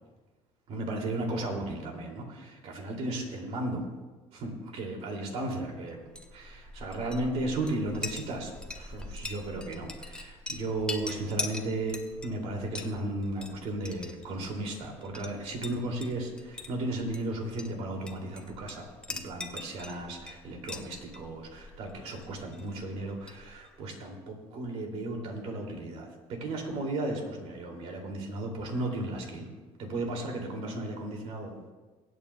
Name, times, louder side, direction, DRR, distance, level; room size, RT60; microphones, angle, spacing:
voice 1, 0.7-3.8 4.3-6.0 6.3-29.5 29.8-31.7, right 2 dB, 65° right, 1 dB, 2.7 m, -35 dB
Chink clink, 6.0-23.8, left 2 dB, 10° left, 0.9 m, -43 dB
23.0 x 9.0 x 2.3 m, 1.3 s
cardioid pair, 120°, 11 cm